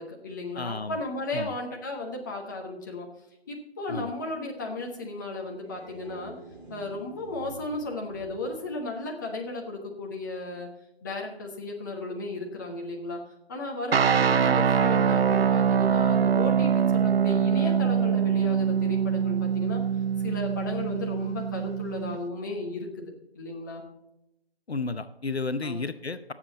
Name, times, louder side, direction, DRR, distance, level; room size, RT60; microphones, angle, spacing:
voice 1, 0.0-3.1 3.5-6.3 6.7-10.7 11.0-13.2 13.5-19.8 20.2-23.8 25.6-25.8, left 2 dB, 20° left, 0 dB, 1.2 m, -35 dB
voice 2, 0.5-1.0 1.3-1.5 3.9-4.1 24.7-26.3, left 3 dB, 75° left, 12 dB, 0.8 m, -32 dB
sound 1, 5.4-9.7, right 1 dB, 50° right, 4.8 m, -49 dB
sound 2, 13.9-22.2, right 7 dB, 70° right, 0.5 m, -24 dB
18.0 x 7.5 x 4.0 m, 0.85 s
figure-of-eight pair, 155°, 32 cm